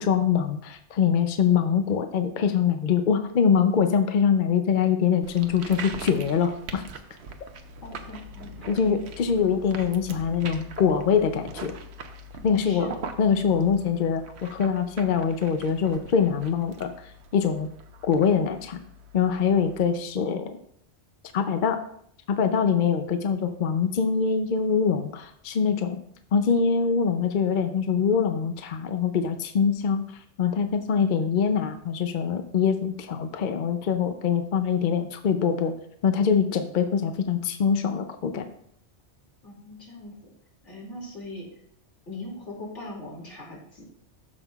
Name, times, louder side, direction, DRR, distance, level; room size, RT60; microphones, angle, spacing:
voice 1, 0.0-6.8 8.7-11.7 12.4-12.9 13.2-16.9 17.3-17.7 18.0-18.8 19.1-20.6 21.3-21.8 22.3-26.0 26.3-30.0 30.4-35.7 36.0-38.5, left 6 dB, 50° left, 7 dB, 0.7 m, -24 dB
sound 1, 5.2-19.8, right 2 dB, 70° right, 1.0 m, -42 dB
voice 2, 7.8-8.7 12.4-13.1 39.4-40.1 40.6-41.5 42.1-43.8, left 1 dB, 80° left, -3 dB, 2.8 m, -40 dB
13.0 x 5.5 x 2.4 m, 0.67 s
omnidirectional pair, 1.2 m